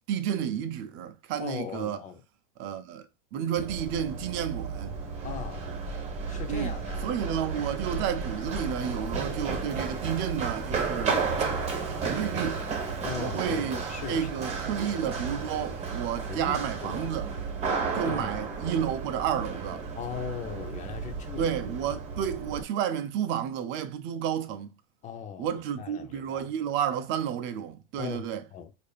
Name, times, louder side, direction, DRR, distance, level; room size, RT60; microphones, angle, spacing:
voice 1, 0.1-2.0 2.6-3.1 3.3-5.0 6.5-6.8 7.0-11.2 12.0-12.7 13.2-13.8 14.1-17.3 17.9-19.9 21.4-24.7 25.4-28.4, right 9 dB, 40° right, 0.5 m, -31 dB
voice 2, 1.4-2.2 5.2-5.7 6.3-7.1 13.0-14.9 16.2-17.1 18.1-18.3 20.0-21.5 25.0-26.5 28.0-28.7, left 8 dB, 25° left, 0.6 m, -39 dB
Run, 3.6-22.6, right 4 dB, 20° right, 1.3 m, -33 dB
4.7 x 2.6 x 2.4 m
supercardioid pair, 125°, 30 cm